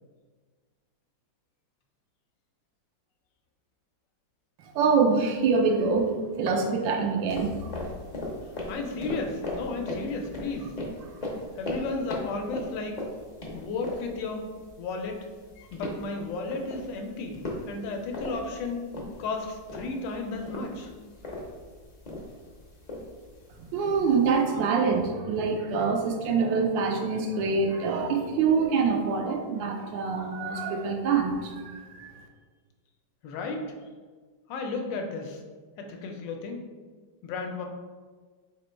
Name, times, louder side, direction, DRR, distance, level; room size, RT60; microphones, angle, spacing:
voice 1, 4.7-7.7 23.7-32.1, right 5 dB, 85° right, 3 dB, 1.3 m, -25 dB
sound 1, 7.3-24.4, left 1 dB, 45° left, 0.5 m, -39 dB
voice 2, 8.7-10.7 11.6-13.0 13.5-14.5 14.8-15.3 15.6-18.8 19.2-20.9 33.2-33.7 34.5-35.4 35.8-36.6 37.2-37.6, left 3 dB, 80° left, 3 dB, 1.3 m, -33 dB
4.0 x 3.0 x 4.3 m, 1.5 s
omnidirectional pair, 2.0 m